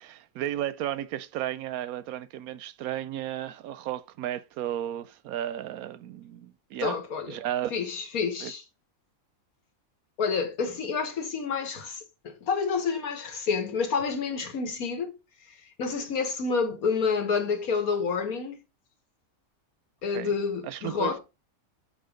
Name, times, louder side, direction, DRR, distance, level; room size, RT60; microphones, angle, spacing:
voice 1, 0.0-7.0 7.3-7.7 8.4-8.5 20.1-20.3 20.6-21.2, right 12 dB, 90° right, 1.1 m, -34 dB
voice 2, 6.8-7.4 7.7-8.6 10.2-15.1 15.8-18.6 20.0-21.2, left 5 dB, 85° left, 1.7 m, -29 dB
6.4 x 4.3 x 4.9 m
omnidirectional pair, 1.5 m